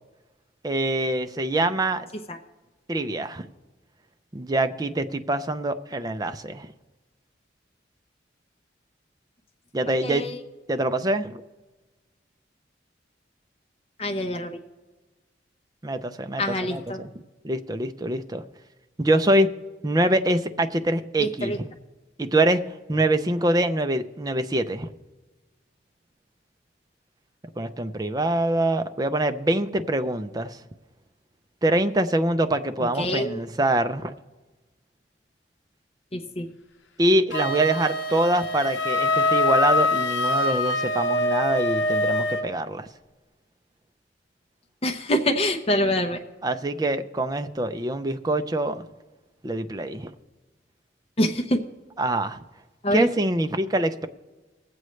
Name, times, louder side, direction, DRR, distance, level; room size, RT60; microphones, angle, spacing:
voice 1, 0.6-2.0 2.9-3.4 4.3-6.7 9.7-10.2 10.7-11.4 15.8-17.1 17.4-18.4 19.0-19.5 19.8-21.7 22.2-22.6 22.9-24.9 27.6-30.6 31.6-34.1 37.0-42.9 46.4-48.9 49.4-50.1 52.0-52.4 52.9-54.1, right 1 dB, 20° right, 8 dB, 0.5 m, -24 dB
voice 2, 10.0-10.4 14.0-14.6 16.4-17.0 21.2-21.6 33.0-33.4 36.1-36.5 44.8-46.2 51.2-51.6 52.8-53.1, left 1 dB, 35° left, 4 dB, 0.7 m, -25 dB
Wind instrument woodwind instrument, 37.3-42.5, left 2 dB, 90° left, 0.7 m, -24 dB
21.5 x 7.8 x 3.2 m, 1.2 s
head